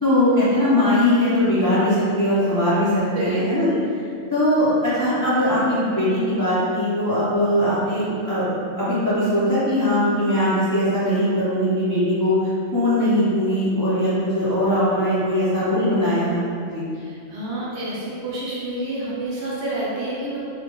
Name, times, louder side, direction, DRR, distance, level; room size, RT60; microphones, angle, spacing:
voice 1, 0.0-3.7 4.3-16.8, left 1 dB, 35° left, -13 dB, 0.3 m, -20 dB
voice 2, 3.1-3.8 16.9-20.4, right 1 dB, 65° right, -6 dB, 0.8 m, -29 dB
2.2 x 2.1 x 2.9 m, 2.4 s
omnidirectional pair, 1.4 m